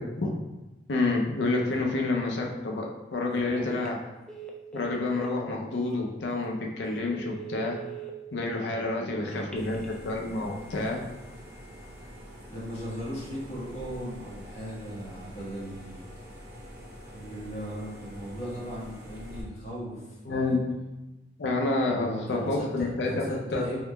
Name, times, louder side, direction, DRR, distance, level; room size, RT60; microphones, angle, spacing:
voice 1, 0.9-2.9 3.1-4.0 4.7-7.8 8.3-11.0 20.3-20.6 21.4-23.2 23.5-23.6, left 2 dB, 70° left, 0 dB, 0.5 m, -28 dB
voice 2, 3.3-3.9 8.7-9.7 12.5-16.0 17.0-20.6 21.9-23.8, equal, 35° left, -8 dB, 1.3 m, -38 dB
Telephone, 3.7-4.0 4.3-5.4 5.9-6.0 6.4-6.5 7.0-8.1 9.3-9.9, right 9 dB, 5° left, 0.3 m, -42 dB
sound 1, 9.6-19.4, equal, 60° right, 0.7 m, -45 dB
3.6 x 3.1 x 2.2 m, 1.1 s
head